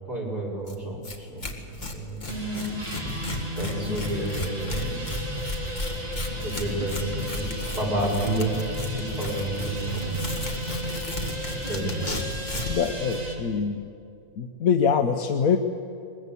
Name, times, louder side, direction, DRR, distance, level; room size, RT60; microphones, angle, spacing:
voice 1, 0.1-2.3 2.7-2.9 3.6-5.0 6.4-7.4 7.7-8.5 8.9-10.2 10.6-11.0 11.7-12.2, right 1 dB, 85° right, -4 dB, 5.9 m, -31 dB
Tearing, 0.7-0.8 1.0-1.2 1.4-12.8, left 2 dB, 30° left, 2.1 m, -35 dB
sound 1, 2.3-13.4, equal, 25° right, 3.3 m, -32 dB
voice 2, 12.7-13.9 14.4-15.6, left 6 dB, 65° left, 5 dB, 1.3 m, -24 dB
22.0 x 21.5 x 8.4 m, 2.5 s
omnidirectional pair, 1.6 m